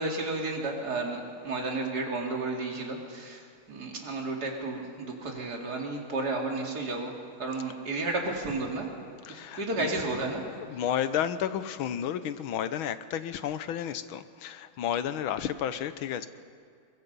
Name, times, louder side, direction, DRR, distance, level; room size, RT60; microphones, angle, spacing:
voice 1, 0.0-8.9 9.3-10.5 10.7-10.8, right 2 dB, 45° right, 1 dB, 3.1 m, -32 dB
voice 2, 9.2-9.9 10.7-16.3, left 9 dB, 75° left, 12 dB, 1.6 m, -32 dB
23.0 x 22.0 x 5.5 m, 2.3 s
omnidirectional pair, 2.3 m